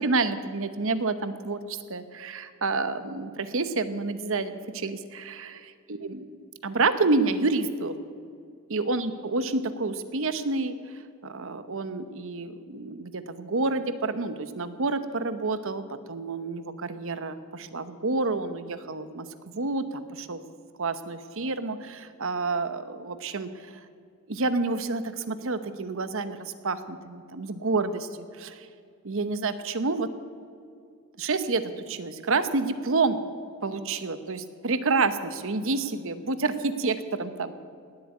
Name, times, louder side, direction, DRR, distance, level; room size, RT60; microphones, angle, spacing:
voice 1, 0.0-5.6 5.9-6.2 6.6-8.0 8.7-10.7 11.2-15.8 16.1-20.4 20.8-23.5 24.3-28.1 28.3-28.7 29.0-30.1 31.2-33.2 33.6-37.5, right 3 dB, 65° right, 11 dB, 0.9 m, -29 dB
18.5 x 8.1 x 8.6 m, 2.3 s
head